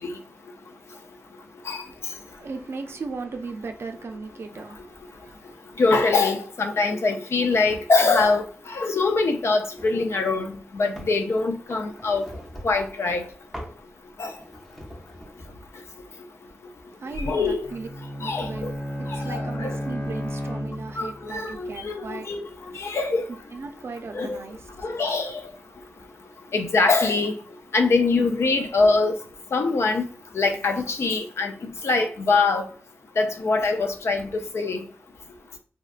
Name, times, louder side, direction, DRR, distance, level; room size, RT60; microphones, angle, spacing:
voice 1, 1.8-5.5 16.9-17.9 18.2-22.3 23.5-24.7 25.8-26.1, right 4 dB, 65° right, 0.4 m, -37 dB
voice 2, 5.8-8.4 8.7-12.2 12.6-13.2 14.2-14.3 17.2-17.7 18.2-18.7 19.3-19.8 21.0-22.4 22.8-23.3 24.1-24.4 24.8-25.4 26.5-27.3 27.7-29.2 29.5-30.0 30.3-31.5 31.8-32.6 33.2-34.3 34.5-34.8, left 3 dB, 75° left, 0.4 m, -23 dB
sound 1, 9.8-10.0 10.4-11.2 11.7-12.9 13.5-13.8 14.2-15.6, equal, 5° left, 0.6 m, -42 dB
Bowed string instrument, 17.6-21.3, equal, 50° left, 1.0 m, -32 dB
2.7 x 2.2 x 2.4 m
wide cardioid pair, 105°, 5 cm